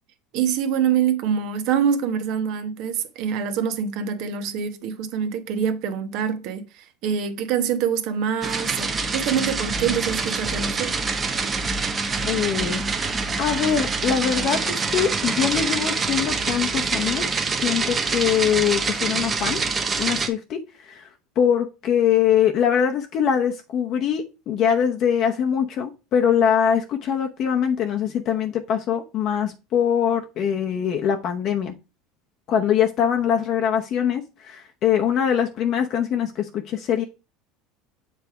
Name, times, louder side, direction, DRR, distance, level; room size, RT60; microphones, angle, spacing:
voice 1, 0.3-10.9, right 8 dB, 65° right, 1.0 m, -25 dB
sound 1, 8.4-20.3, right 4 dB, 25° right, 1.0 m, -25 dB
voice 2, 12.2-17.2 17.6-19.6 20.0-21.1 21.4-31.7 32.5-37.0, left 8 dB, 50° left, 0.8 m, -23 dB
7.1 x 3.4 x 4.7 m
supercardioid pair, 95°, 0 cm